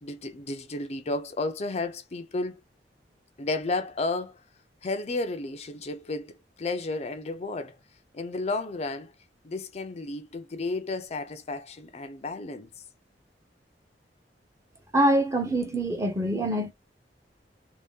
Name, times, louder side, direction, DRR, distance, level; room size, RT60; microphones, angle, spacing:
voice 1, 0.0-2.6 3.4-4.4 4.8-7.8 8.1-9.1 9.4-12.7, left 2 dB, 40° left, 0.5 m, -32 dB
voice 2, 14.9-16.7, right 1 dB, 20° right, 0.8 m, -24 dB
3.1 x 2.7 x 3.5 m
head